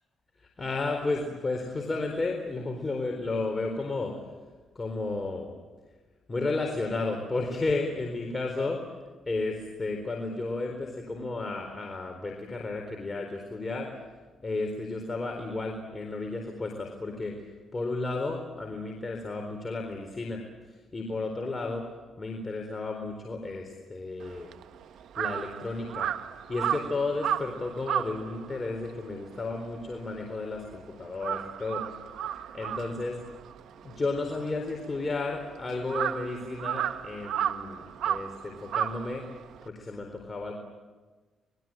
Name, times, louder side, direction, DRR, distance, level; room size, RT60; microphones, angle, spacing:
voice 1, 0.4-4.2 4.7-5.5 6.3-8.9 9.3-13.9 14.4-17.4 17.7-20.4 20.7-21.8 22.2-24.5 25.2-26.1 26.5-31.8 32.2-33.2 33.8-39.2 39.6-40.5, left 3 dB, 25° left, 2 dB, 4.1 m, -33 dB
Crow, 24.2-30.8 31.1-39.7, right 9 dB, 75° right, 1.1 m, -34 dB
28.0 x 21.5 x 9.1 m, 1.3 s
cardioid pair, 90°, 0 cm